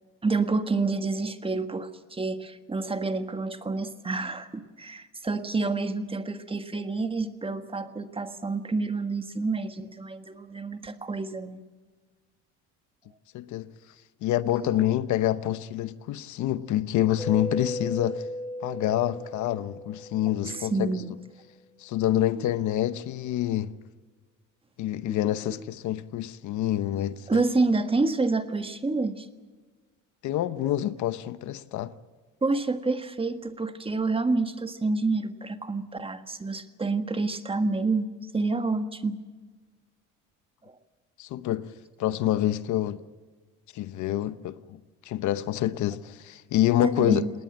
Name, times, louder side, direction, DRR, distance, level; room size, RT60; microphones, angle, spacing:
voice 1, 0.2-11.6 14.6-14.9 20.4-21.1 22.4-22.5 25.1-25.2 27.3-29.3 32.4-39.2 40.7-40.8 46.8-47.3, right 3 dB, 20° right, 1.5 m, -28 dB
voice 2, 13.3-13.7 14.2-18.3 18.6-20.9 21.8-23.7 24.8-27.4 30.2-31.9 41.2-41.7 42.0-43.0 43.7-47.3, left 13 dB, 70° left, 0.9 m, -27 dB
Mallet percussion, 17.2-21.0, left 1 dB, 5° left, 4.5 m, -36 dB
19.5 x 19.0 x 8.8 m
cardioid pair, 110°, 31 cm